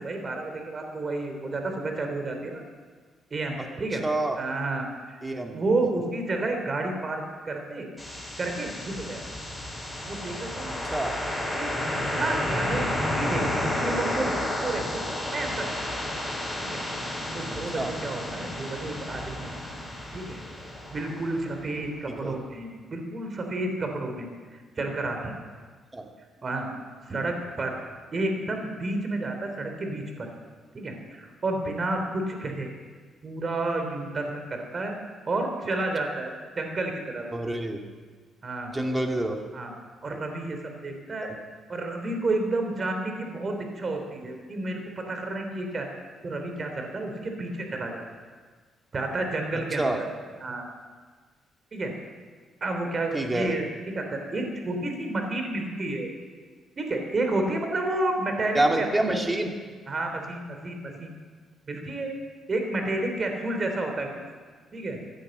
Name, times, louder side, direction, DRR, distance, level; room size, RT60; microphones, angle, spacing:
voice 1, 0.0-2.6 3.3-4.0 4.4-5.2 5.5-7.9 8.4-9.2 10.1-10.7 11.5-15.8 16.6-19.8 20.1-20.4 20.9-24.3 24.8-25.4 26.4-26.7 27.1-27.7 28.1-30.3 30.7-32.7 33.2-34.9 35.3-37.2 38.4-38.7 39.5-39.7 40.0-41.3 41.7-45.9 46.2-48.0 48.9-50.0 50.4-50.7 51.7-51.9 52.6-53.6 53.9-56.1 56.8-59.2 59.9-61.1 61.7-62.2 62.5-64.1 64.7-65.0, right 2 dB, 40° right, 4 dB, 3.2 m, -31 dB
voice 2, 4.0-4.4 5.2-5.6 10.9-11.1 17.8-17.9 22.1-22.4 25.9-26.1 37.3-37.8 38.7-39.4 41.2-41.3 49.8-50.0 53.1-53.6 58.5-59.5, right 1 dB, 15° right, 2 dB, 2.2 m, -27 dB
sound 1, 8.0-21.9, left 1 dB, 5° left, 6.1 m, -31 dB
15.5 x 10.0 x 7.7 m, 1.5 s
cardioid pair, 90°, 0 cm